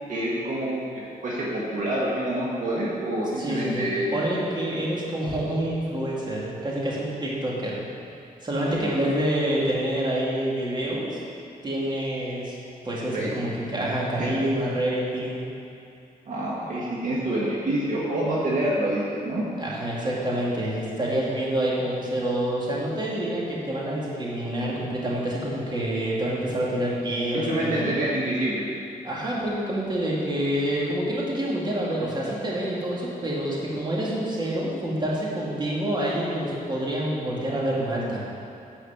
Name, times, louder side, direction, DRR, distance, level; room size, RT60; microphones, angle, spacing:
voice 1, 0.1-4.1 8.6-8.9 13.1-13.5 14.2-14.3 16.2-19.4 27.3-28.7, right 1 dB, 60° right, -6 dB, 1.6 m, -27 dB
voice 2, 3.4-7.8 8.4-11.2 11.6-12.6 12.8-15.4 19.6-27.9 29.0-38.2, right 1 dB, 30° right, -5 dB, 2.2 m, -27 dB
10.0 x 4.8 x 7.2 m, 2.5 s
cardioid pair, 110°, 15 cm